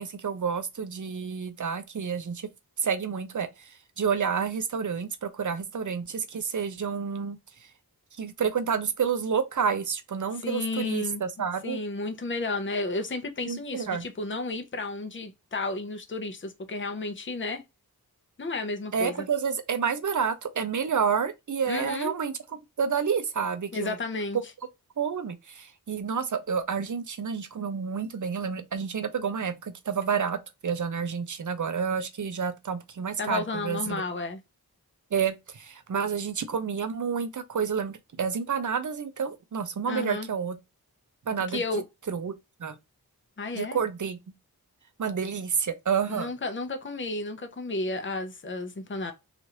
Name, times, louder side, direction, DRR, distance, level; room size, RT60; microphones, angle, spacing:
voice 1, 0.0-2.5 2.8-7.4 8.2-11.8 13.5-14.0 18.9-24.0 25.0-34.0 35.1-40.6 41.3-41.6 42.1-42.3 42.6-42.8 43.5-44.2 45.0-46.3, right 6 dB, 55° right, 0.6 m, -29 dB
voice 2, 10.4-11.2 11.6-17.6 18.4-19.3 21.7-22.1 23.7-24.4 33.2-34.4 39.9-40.3 41.5-41.8 43.4-43.8 46.1-49.1, left 3 dB, 30° left, 0.6 m, -32 dB
3.0 x 2.5 x 2.7 m
wide cardioid pair, 60°, 37 cm